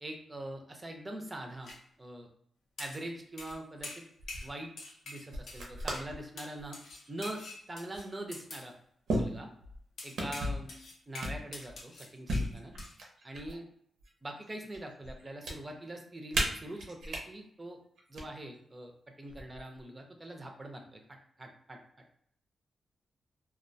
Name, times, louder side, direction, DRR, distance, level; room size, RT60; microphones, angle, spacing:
voice 1, 0.0-1.7 2.0-2.3 2.8-4.0 4.4-4.7 5.1-6.8 7.1-8.7 9.1-9.5 10.0-10.7 11.1-12.7 13.2-13.7 14.2-17.8 18.1-21.8, right 1 dB, 20° right, 2 dB, 0.5 m, -43 dB
sound 1, 1.6-1.8 2.8-3.1 3.4-3.6 3.8-4.5 4.8-5.7 5.9-6.1 6.4-8.7 10.0-12.5 12.8-12.9, left 2 dB, 75° left, 0.6 m, -46 dB
sound 2, 3.5-3.8 4.2-4.5 5.3-6.2 6.6-6.9 7.9-8.0 9.1-9.8 10.2-10.7 11.2-11.8 12.3-13.6 14.0-14.8 15.1-15.5 16.3-17.2 18.0-18.2 19.3-19.8, right 1 dB, 80° right, 0.6 m, -35 dB
2.3 x 2.1 x 2.6 m, 0.67 s
wide cardioid pair, 130°, 0 cm